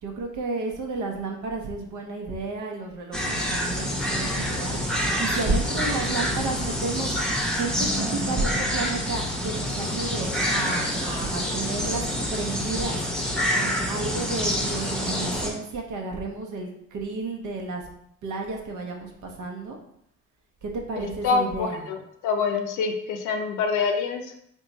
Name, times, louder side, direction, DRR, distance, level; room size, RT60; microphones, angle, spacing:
voice 1, 0.0-13.0 13.5-17.9 18.2-19.8 20.6-21.9, right 3 dB, 75° right, 1 dB, 0.8 m, -32 dB
sound 1, 3.1-15.5, equal, 5° left, 0.7 m, -27 dB
voice 2, 20.9-22.0 22.2-24.4, left 5 dB, 90° left, 3 dB, 0.5 m, -26 dB
3.6 x 2.3 x 4.0 m, 0.72 s
cardioid pair, 90°, 30 cm